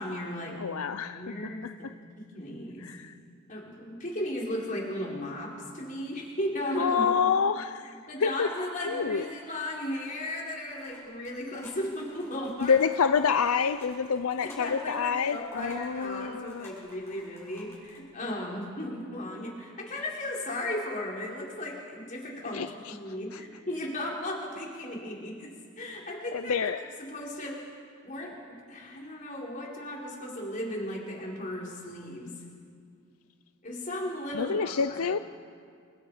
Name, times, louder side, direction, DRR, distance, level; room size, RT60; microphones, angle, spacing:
voice 1, 0.0-0.6 1.1-2.9 3.5-7.1 8.1-12.7 14.4-22.6 22.9-26.7 27.0-27.7 28.0-28.4 28.7-32.3 33.6-35.0, left 1 dB, 35° left, -3 dB, 4.9 m, -36 dB
voice 2, 0.6-1.9 2.8-3.2 6.8-8.5 8.8-9.3 12.6-16.7 22.5-23.4 26.3-26.8 34.3-35.2, left 6 dB, 75° left, 11 dB, 0.6 m, -28 dB
sound 1, 10.7-18.0, left 2 dB, 10° left, 7.6 m, -54 dB
29.5 x 26.0 x 5.1 m, 2.2 s
head